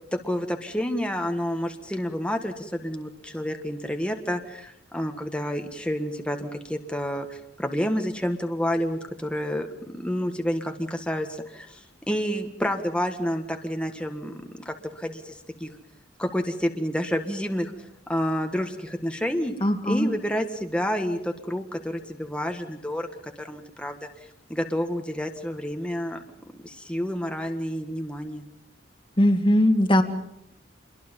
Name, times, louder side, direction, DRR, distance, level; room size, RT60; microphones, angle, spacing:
voice 1, 0.1-15.7 16.2-17.7 18.1-19.5 19.8-24.1 24.5-28.4, equal, 5° left, 4 dB, 1.7 m, -29 dB
voice 2, 19.6-20.1 29.2-30.0, left 1 dB, 25° left, 6 dB, 2.1 m, -20 dB
28.5 x 22.5 x 5.5 m, 0.77 s
head